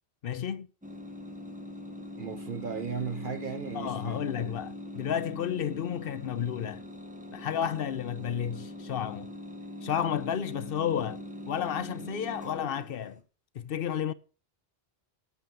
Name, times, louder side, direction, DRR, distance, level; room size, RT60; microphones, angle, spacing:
voice 1, 0.2-0.7 3.7-6.8 7.3-9.3 9.8-13.2 13.5-14.1, left 9 dB, 60° left, 0.8 m, -32 dB
sound 1, 0.8-13.2, left 1 dB, 5° right, 1.2 m, -42 dB
voice 2, 2.2-4.2, right 6 dB, 55° right, 0.9 m, -36 dB
8.3 x 7.6 x 6.9 m
omnidirectional pair, 1.1 m